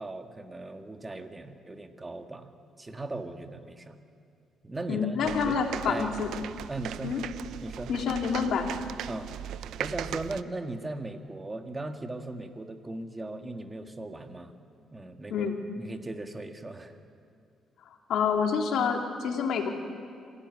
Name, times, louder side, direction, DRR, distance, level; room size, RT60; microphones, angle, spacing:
voice 1, 0.0-2.5 2.8-4.0 4.6-6.2 6.7-7.2 7.6-7.9 9.1-9.3 9.8-14.5 14.9-15.5 15.8-17.0, right 2 dB, 20° right, 6 dB, 1.8 m, -38 dB
voice 2, 4.9-6.4 7.0-7.2 7.9-8.7 15.3-15.6 18.1-19.7, left 6 dB, 75° left, 3 dB, 2.7 m, -27 dB
sound 1, 5.2-10.4, right 11 dB, 80° right, 0.6 m, -38 dB
26.0 x 16.5 x 9.5 m, 2.4 s
cardioid pair, 90°, 0 cm